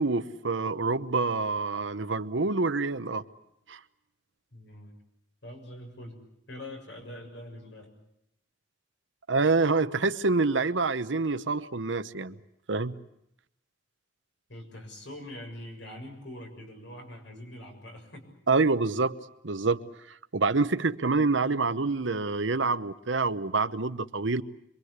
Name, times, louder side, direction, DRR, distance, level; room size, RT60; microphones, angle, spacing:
voice 1, 0.0-3.2 3.7-3.8 9.3-12.3 12.7-12.9 18.5-19.2 19.4-24.4, right 3 dB, 90° right, 12 dB, 1.0 m, -27 dB
voice 2, 4.5-4.9 5.4-6.2 6.5-7.9 14.5-18.2, left 1 dB, 75° left, 3 dB, 7.1 m, -43 dB
26.5 x 23.5 x 8.1 m, 0.78 s
head